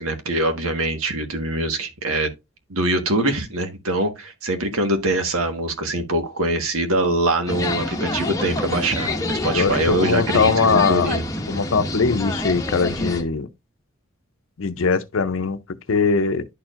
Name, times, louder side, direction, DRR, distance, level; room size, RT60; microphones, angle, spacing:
voice 1, 0.0-2.3 2.7-11.2, right 1 dB, 80° right, 1.4 m, -23 dB
sound 1, 7.5-13.2, left 1 dB, 15° left, 0.8 m, -27 dB
voice 2, 9.5-11.1 11.5-13.5 14.6-15.6 15.9-16.5, left 5 dB, 70° left, 0.6 m, -21 dB
11.0 x 4.4 x 2.5 m
head